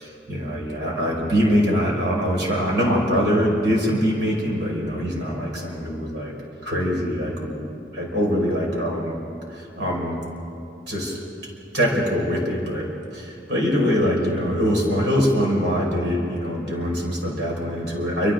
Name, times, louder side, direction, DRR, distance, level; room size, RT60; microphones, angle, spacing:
voice 1, 0.3-6.3 6.6-7.7 7.9-9.2 9.5-10.2 10.9-11.2 11.7-18.3, equal, 80° right, -2 dB, 5.4 m, -23 dB
29.5 x 25.5 x 3.8 m, 2.5 s
head